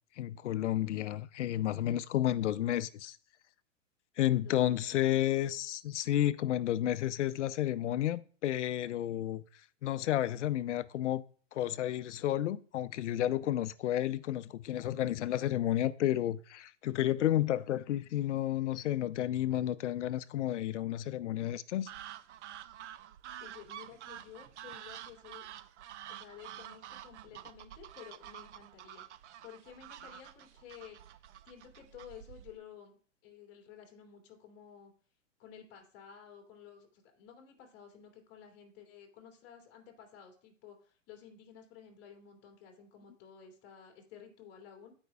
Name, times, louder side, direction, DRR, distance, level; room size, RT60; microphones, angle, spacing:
voice 1, 0.2-3.2 4.2-9.4 9.8-11.2 11.5-21.9, left 12 dB, 65° left, 0.6 m, -31 dB
voice 2, 4.3-5.0 23.4-25.4 26.1-29.1 29.4-31.2 31.4-34.9 35.4-44.9, left 8 dB, 30° left, 2.4 m, -53 dB
sound 1, 21.9-32.6, right 11 dB, 60° right, 0.6 m, -49 dB
15.0 x 5.3 x 2.3 m
hypercardioid pair, 145°, 39 cm